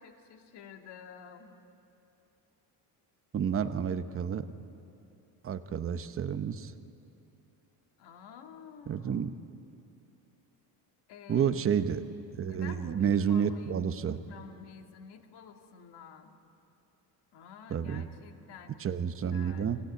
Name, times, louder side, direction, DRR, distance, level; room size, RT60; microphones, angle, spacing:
voice 1, 0.0-1.5 8.0-9.3 11.1-11.7 12.4-13.8 14.3-16.3 17.3-19.0 19.3-19.8, left 7 dB, 60° left, 4 dB, 2.2 m, -50 dB
voice 2, 3.3-4.5 5.4-6.7 8.9-9.3 11.3-12.0 12.3-14.2 17.7-18.0 18.8-19.8, right 7 dB, 30° right, 11 dB, 0.9 m, -30 dB
25.5 x 17.5 x 9.1 m, 2.9 s
cardioid pair, 130°, 44 cm